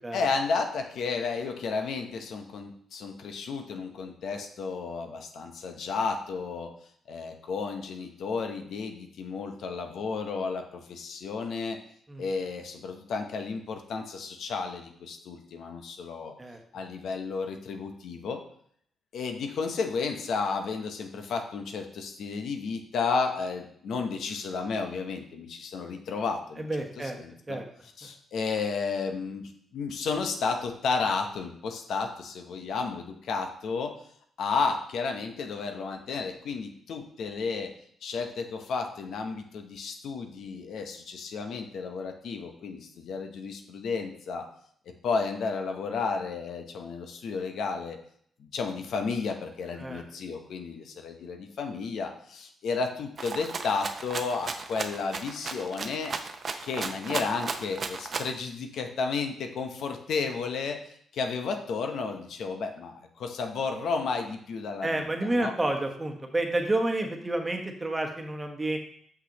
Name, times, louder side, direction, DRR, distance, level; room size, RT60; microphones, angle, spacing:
voice 1, 0.1-6.7 7.1-11.8 12.2-16.3 16.7-18.4 19.1-26.7 27.2-27.6 28.0-33.9 34.4-37.7 38.0-44.4 45.0-48.0 48.4-56.2 56.6-65.5, left 4 dB, 75° left, 5 dB, 0.8 m, -32 dB
voice 2, 26.6-27.2 27.5-27.6 28.0-28.1 49.8-50.0 64.8-68.8, right 2 dB, 20° right, 3 dB, 1.2 m, -30 dB
Rattle (instrument), 53.2-58.4, right 4 dB, 50° right, 0.6 m, -35 dB
6.1 x 5.7 x 3.0 m, 0.65 s
cardioid pair, 65°, 0 cm